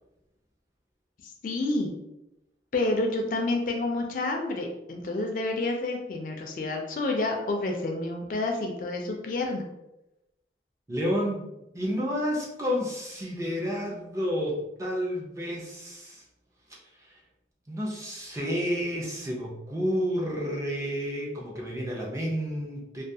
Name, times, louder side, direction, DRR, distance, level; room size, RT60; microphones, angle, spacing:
voice 1, 1.2-1.9 2.7-9.6, left 2 dB, 50° left, 2 dB, 0.4 m, -29 dB
voice 2, 10.9-11.5 11.7-16.2 17.7-23.0, equal, 15° right, -3 dB, 0.5 m, -30 dB
2.3 x 2.2 x 2.6 m, 0.90 s
head